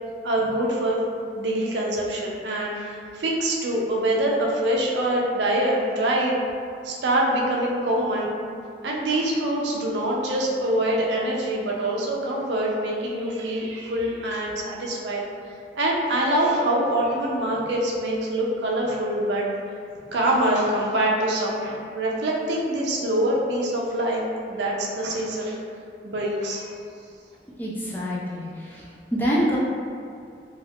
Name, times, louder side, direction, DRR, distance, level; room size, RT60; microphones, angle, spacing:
voice 1, 0.2-1.0 1.3-6.4 6.8-8.3 8.8-15.3 15.8-19.5 20.1-25.6 26.0-26.7, right 1 dB, 80° right, -2 dB, 0.5 m, -24 dB
voice 2, 27.6-28.9 29.1-29.6, equal, 10° left, -6 dB, 0.3 m, -26 dB
2.4 x 2.3 x 3.3 m, 2.3 s
head